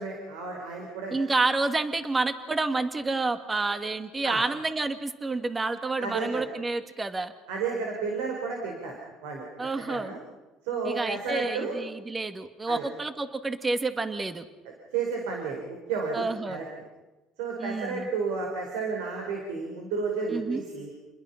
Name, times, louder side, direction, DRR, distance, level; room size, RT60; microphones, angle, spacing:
voice 1, 0.0-1.2 4.2-4.4 6.0-6.4 7.5-8.9 9.2-9.4 9.9-10.2 10.6-11.8 12.7-12.9 14.9-16.6 17.4-20.9, right 4 dB, 85° right, 1 dB, 5.0 m, -32 dB
voice 2, 1.1-7.3 9.6-10.1 10.9-14.5 16.1-16.6 17.6-18.1 20.3-20.6, right 3 dB, 20° right, 9 dB, 1.9 m, -29 dB
29.0 x 21.5 x 5.8 m, 1.1 s
supercardioid pair, 95°, 0 cm